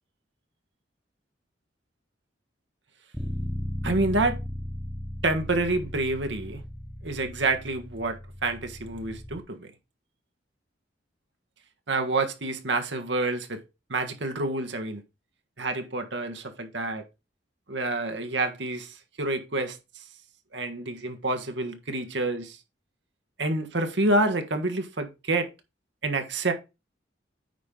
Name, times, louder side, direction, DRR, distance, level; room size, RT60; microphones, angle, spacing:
Bass guitar, 3.1-9.4, equal, 5° right, 0.7 m, -36 dB
voice 1, 3.8-4.4 5.2-6.6 7.0-9.7 11.9-13.6 13.9-15.0 15.6-17.0 17.7-20.0 20.5-22.6 23.4-25.5 26.0-26.5, right 2 dB, 70° right, 1.4 m, -28 dB
9.1 x 5.3 x 3.8 m
head